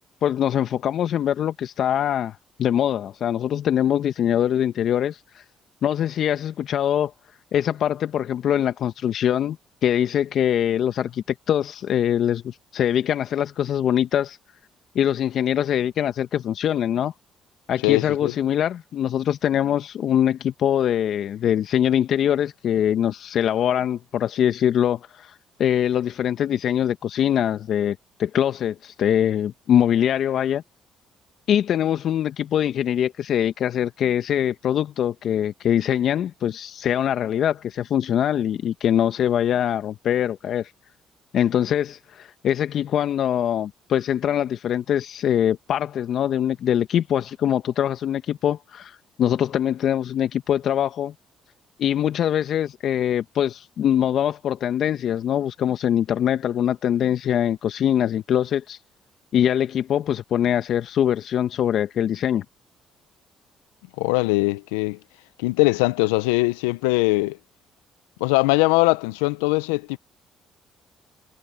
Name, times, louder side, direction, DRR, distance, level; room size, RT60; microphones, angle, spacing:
voice 1, 0.2-5.4 5.8-7.1 7.5-9.6 9.8-14.4 14.9-17.1 17.7-30.6 31.5-40.7 41.3-51.1 51.8-58.8 59.3-62.4, left 10 dB, 60° left, 1.6 m, -23 dB
voice 2, 17.8-18.3 64.0-65.0 65.4-67.4 68.2-70.0, left 24 dB, 85° left, 0.8 m, -21 dB
hypercardioid pair, 55°, 0 cm